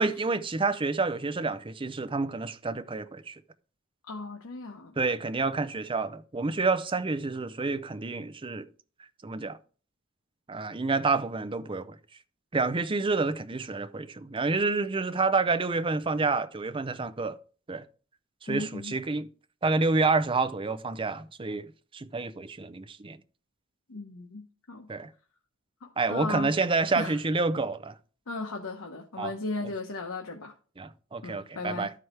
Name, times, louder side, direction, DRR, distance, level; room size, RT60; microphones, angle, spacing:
voice 1, 0.0-3.4 5.0-8.7 9.2-9.6 10.5-12.0 12.5-17.4 17.7-17.8 18.4-19.3 19.6-23.2 24.9-25.1 26.0-27.9 29.2-29.3 30.8-31.9, right 3 dB, 25° right, 0.5 m, -28 dB
voice 2, 4.1-4.9 18.5-18.9 23.9-24.9 25.8-26.5 26.9-27.2 28.3-30.5 31.2-31.9, left 3 dB, 85° left, 1.0 m, -36 dB
12.0 x 4.8 x 4.5 m
head